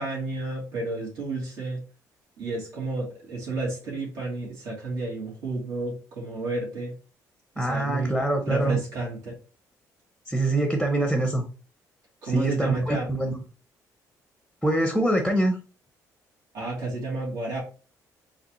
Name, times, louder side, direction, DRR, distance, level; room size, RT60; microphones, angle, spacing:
voice 1, 0.0-1.8 2.4-6.9 7.5-8.1 8.4-9.3 12.2-13.1 16.5-17.6, right 2 dB, 75° right, -5 dB, 2.6 m, -31 dB
voice 2, 7.6-8.8 10.3-11.4 12.2-13.4 14.6-15.6, right 1 dB, ahead, 4 dB, 0.7 m, -24 dB
4.9 x 3.2 x 3.1 m, 0.36 s
cardioid pair, 140°, 7 cm